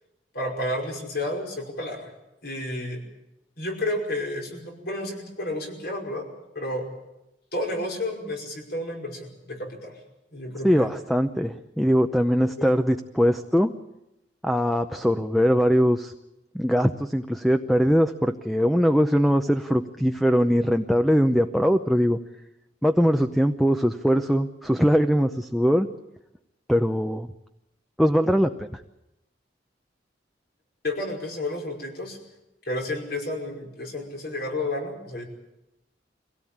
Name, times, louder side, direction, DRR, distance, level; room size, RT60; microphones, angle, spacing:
voice 1, 0.3-2.1 2.4-3.0 3.6-6.3 6.6-6.8 7.5-10.0 10.3-10.9 12.4-12.7 30.8-32.2 32.7-35.2, left 1 dB, 65° left, 1 dB, 5.3 m, -31 dB
voice 2, 10.6-13.7 14.4-16.1 16.5-22.2 22.8-25.9 26.7-27.3 28.0-28.8, equal, ahead, 7 dB, 0.7 m, -21 dB
24.5 x 17.0 x 8.8 m, 0.93 s
head